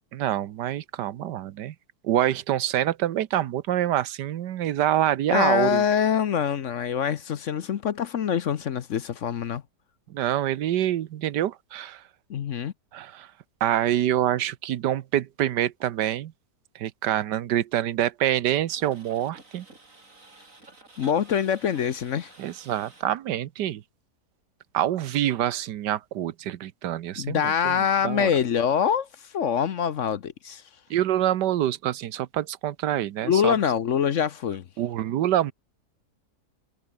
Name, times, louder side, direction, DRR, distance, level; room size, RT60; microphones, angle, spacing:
voice 1, 0.1-1.7 2.0-5.8 10.1-12.0 12.9-13.3 13.6-16.3 16.7-19.6 22.4-23.8 24.7-28.3 30.9-33.5 34.8-35.5, right 12 dB, 90° right, 1.5 m, -26 dB
voice 2, 5.3-9.6 12.3-12.7 21.0-22.3 27.2-29.1 29.3-30.6 33.2-34.6, left 8 dB, 55° left, 1.0 m, -24 dB
sound 1, 18.7-23.2 27.8-27.9, right 3 dB, 50° right, 4.7 m, -51 dB
omnidirectional pair, 1.8 m